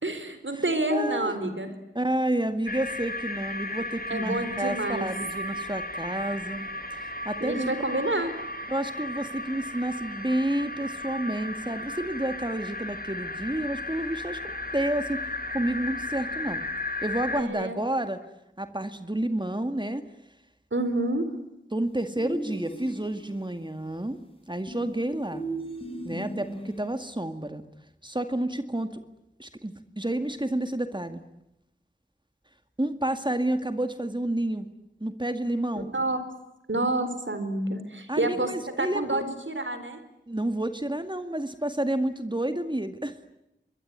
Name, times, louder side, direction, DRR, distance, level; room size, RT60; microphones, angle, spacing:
voice 1, 0.0-1.7 4.1-5.1 7.4-8.3 17.4-17.8 20.7-21.3 35.8-36.2 36.7-38.5 38.8-40.0, right 2 dB, 85° right, 10 dB, 4.3 m, -28 dB
voice 2, 0.9-1.3 1.9-7.7 8.7-15.2 15.5-16.6 17.0-18.2 18.6-20.0 21.7-24.2 24.5-25.5 26.0-27.6 28.0-29.0 29.4-31.2 32.8-34.7 35.0-35.9 38.1-39.2 40.3-43.2, right 1 dB, 25° right, 8 dB, 2.1 m, -30 dB
sound 1, 2.7-17.4, left 2 dB, 50° left, 3.4 m, -35 dB
sound 2, 22.2-23.4 24.7-26.9, right 1 dB, 30° left, 7.0 m, -37 dB
27.0 x 22.0 x 9.8 m, 0.86 s
wide cardioid pair, 40°, 19 cm